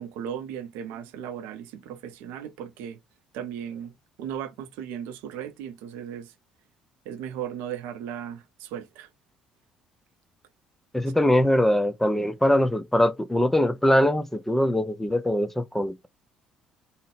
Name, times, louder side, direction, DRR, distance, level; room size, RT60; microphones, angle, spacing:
voice 1, 0.0-3.0 3.3-6.3 7.1-9.1, right 9 dB, 65° right, 0.6 m, -36 dB
voice 2, 10.9-16.1, left 1 dB, 5° left, 0.5 m, -22 dB
3.6 x 2.1 x 3.3 m
figure-of-eight pair, 50°, 4 cm